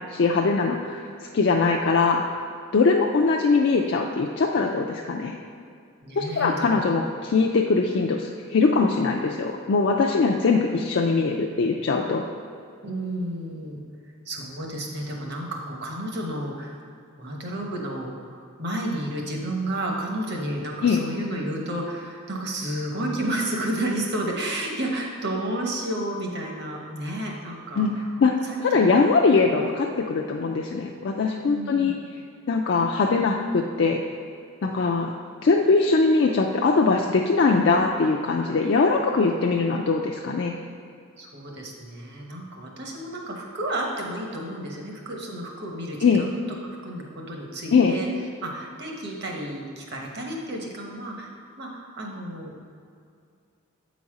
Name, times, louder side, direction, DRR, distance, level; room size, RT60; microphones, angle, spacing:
voice 1, 0.1-1.1 1.3-2.2 2.7-5.4 6.2-12.2 20.8-21.0 27.8-27.9 28.2-28.3 28.6-31.9 32.5-34.0 34.6-35.1 35.4-40.5 46.0-46.3 47.7-47.9, left 4 dB, 55° left, 0 dB, 0.4 m, -21 dB
voice 2, 6.0-6.8 12.8-16.8 17.2-28.6 29.6-29.7 30.4-30.5 31.4-32.0 41.2-48.1 48.4-52.6, right 1 dB, 50° right, 0 dB, 1.0 m, -32 dB
8.0 x 4.1 x 4.8 m, 2.3 s
head